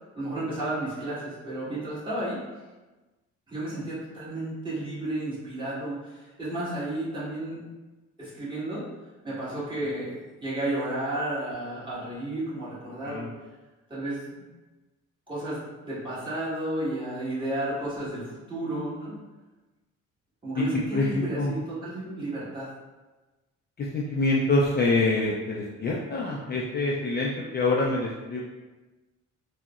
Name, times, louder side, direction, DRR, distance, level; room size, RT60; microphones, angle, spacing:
voice 1, 0.1-2.4 3.5-7.6 8.2-8.8 9.2-13.3 13.9-14.4 15.3-15.6 15.8-19.2 20.4-22.7, right 1 dB, 15° right, -10 dB, 1.5 m, -32 dB
voice 2, 20.9-21.5 23.8-28.4, left 2 dB, 35° left, -3 dB, 0.4 m, -26 dB
3.6 x 2.0 x 2.3 m, 1.2 s
cardioid pair, 90°, 30 cm